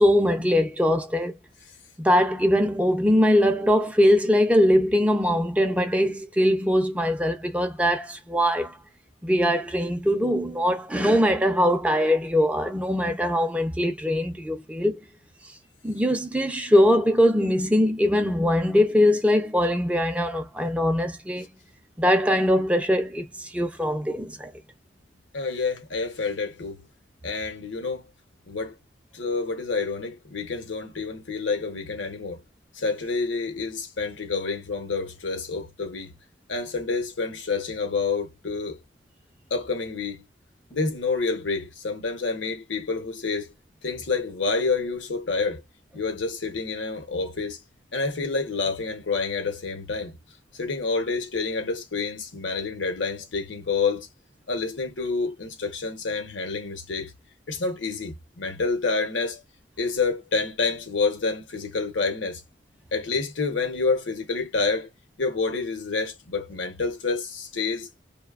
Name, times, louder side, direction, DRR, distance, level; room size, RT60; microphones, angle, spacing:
voice 1, 0.0-1.4 2.0-8.8 9.2-15.0 15.8-21.5 22.0-24.5, equal, 5° right, 0.4 m, -22 dB
voice 2, 25.3-26.8 27.2-28.0 28.5-28.8 29.1-32.4 32.7-36.1 36.5-38.8 39.5-40.2 40.7-43.5 43.8-45.6 45.9-47.6 47.9-50.2 50.5-54.1 54.5-57.1 57.5-59.4 59.8-62.4 62.9-64.9 65.2-67.9, left 4 dB, 80° left, 0.9 m, -28 dB
2.6 x 2.1 x 2.4 m
head